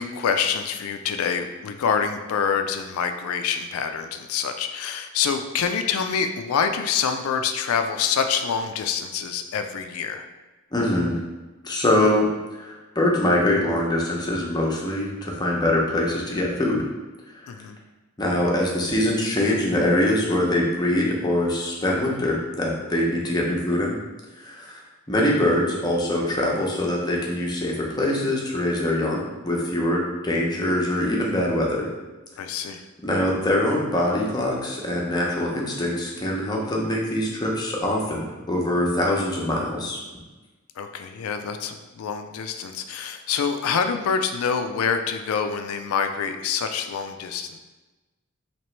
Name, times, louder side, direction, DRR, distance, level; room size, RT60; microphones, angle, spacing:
voice 1, 0.0-10.2 17.5-17.8 32.4-32.8 40.8-47.6, left 6 dB, 80° left, 7 dB, 0.3 m, -26 dB
voice 2, 10.7-11.2 11.6-16.8 17.4-17.6 18.2-24.0 24.4-31.9 33.0-40.0, left 1 dB, 20° left, -2 dB, 0.7 m, -23 dB
3.0 x 2.9 x 4.3 m, 1.2 s
head